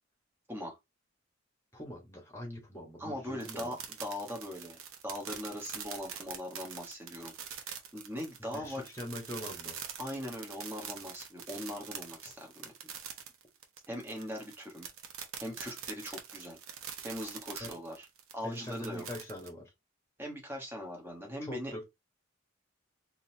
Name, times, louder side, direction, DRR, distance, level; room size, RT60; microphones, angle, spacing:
voice 1, 1.7-3.8 8.5-9.9 17.6-17.7 18.4-19.7 21.4-21.8, left 1 dB, 10° left, 1.3 m, -42 dB
voice 2, 3.0-7.6 7.9-8.8 10.0-12.7 13.9-14.9 15.4-16.6 17.0-18.1 18.3-19.0 20.2-21.7, equal, 10° right, 1.2 m, -40 dB
sound 1, 3.4-19.5, right 8 dB, 85° right, 0.9 m, -44 dB
3.9 x 2.8 x 2.8 m
head